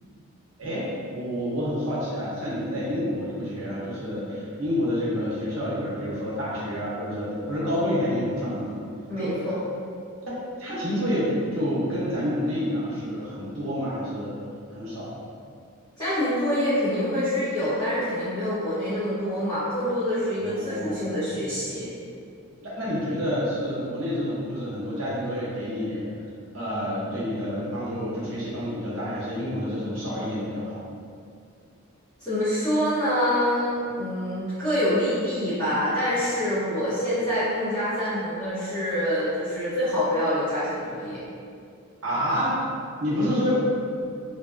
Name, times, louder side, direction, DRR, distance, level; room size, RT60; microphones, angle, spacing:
voice 1, 0.6-8.8 9.2-9.5 10.6-14.4 14.7-15.1 20.4-21.2 22.6-26.0 26.5-30.8 42.0-42.6 43.0-43.7, equal, 70° right, -7 dB, 0.7 m, -28 dB
voice 2, 9.1-9.6 16.0-21.9 32.2-41.2, equal, 15° left, -18 dB, 0.9 m, -26 dB
2.6 x 2.2 x 2.4 m, 2.4 s
head